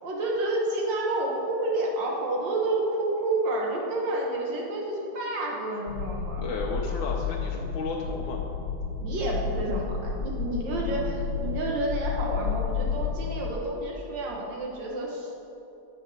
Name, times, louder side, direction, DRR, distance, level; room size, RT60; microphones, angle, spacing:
voice 1, 0.0-6.6 9.0-15.3, right 2 dB, 85° right, -2 dB, 2.0 m, -29 dB
sound 1, 5.9-13.5, left 5 dB, 60° left, 0.6 m, -31 dB
voice 2, 6.4-8.4, left 4 dB, 85° left, -2 dB, 1.4 m, -33 dB
8.8 x 4.5 x 6.3 m, 2.8 s
omnidirectional pair, 2.0 m